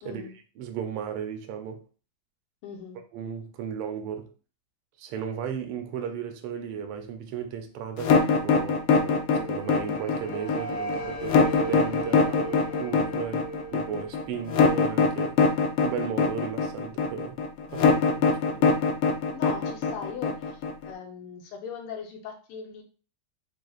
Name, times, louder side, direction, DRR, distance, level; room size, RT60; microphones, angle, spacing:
voice 1, 0.0-0.3 2.6-3.0 19.3-22.8, left 6 dB, 90° left, 1.8 m, -39 dB
voice 2, 0.6-1.9 3.1-4.3 5.0-15.4 15.8-17.4 17.7-18.7, right 7 dB, 90° right, 1.6 m, -35 dB
sound 1, 8.0-20.9, left 4 dB, 70° left, 1.2 m, -22 dB
sound 2, 8.7-15.7, right 2 dB, 50° left, 1.4 m, -38 dB
6.0 x 2.5 x 2.4 m
omnidirectional pair, 2.4 m